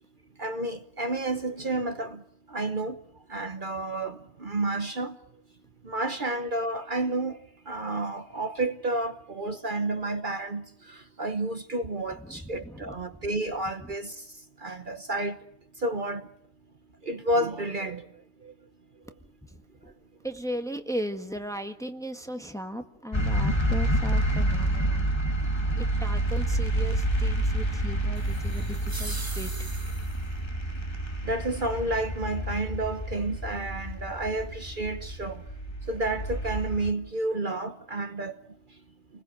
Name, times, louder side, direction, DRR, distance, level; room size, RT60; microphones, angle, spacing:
voice 1, 0.4-2.2 2.5-3.0 3.3-5.2 5.8-7.4 7.7-14.2 14.6-15.4 15.8-16.2 17.0-18.0 18.4-18.5 31.2-35.4 35.9-38.3, right 2 dB, 45° right, 1.2 m, -30 dB
voice 2, 12.2-13.2 19.5-20.0 20.2-25.1 25.8-29.7, equal, 5° left, 1.5 m, -37 dB
sound 1, 23.1-36.9, right 1 dB, 25° left, 1.7 m, -28 dB
sound 2, 28.1-30.3, right 2 dB, 20° right, 1.1 m, -41 dB
29.0 x 21.0 x 6.4 m
omnidirectional pair, 1.2 m